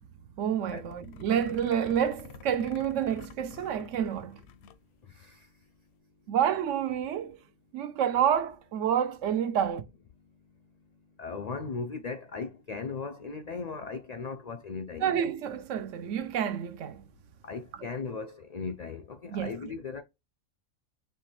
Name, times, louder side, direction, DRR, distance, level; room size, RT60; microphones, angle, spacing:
voice 1, 0.4-4.4 6.3-7.4 7.7-9.8 15.0-17.0 17.7-17.9 19.3-19.7, right 9 dB, 70° right, 0.9 m, -29 dB
sound 1, 0.7-4.8 5.1-5.2 5.4-5.8, left 7 dB, 65° left, 0.7 m, -49 dB
voice 2, 11.2-15.1 17.5-20.0, left 4 dB, 85° left, 0.3 m, -37 dB
4.4 x 3.2 x 3.1 m
omnidirectional pair, 1.4 m